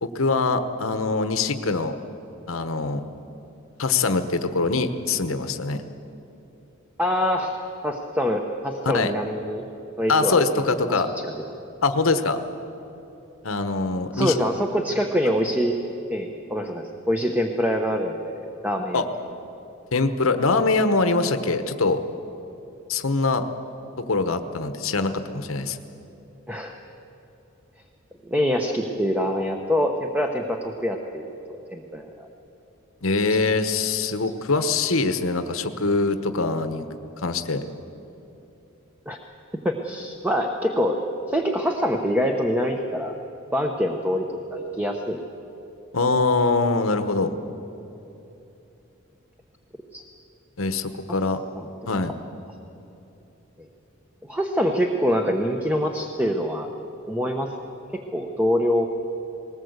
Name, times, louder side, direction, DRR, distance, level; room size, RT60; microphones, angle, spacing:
voice 1, 0.0-2.0 2.5-3.0 3.8-5.8 8.9-9.1 10.1-11.1 11.8-12.4 13.4-14.3 18.9-19.0 19.9-22.0 22.9-23.4 24.1-25.8 33.0-36.8 37.2-37.6 45.9-47.3 50.6-51.4 51.9-52.1, left 3 dB, 85° left, 9 dB, 1.1 m, -23 dB
voice 2, 7.0-7.6 7.8-9.6 10.0-11.3 14.1-15.8 16.1-19.0 26.5-26.8 28.3-31.3 31.7-32.3 33.3-33.4 39.1-39.2 39.6-41.0 41.3-43.2 43.5-45.2 49.9-50.0 51.6-51.7 54.2-56.7 57.1-57.5 57.9-58.9, equal, 10° right, 3 dB, 1.0 m, -25 dB
20.0 x 19.0 x 8.1 m, 3.0 s
head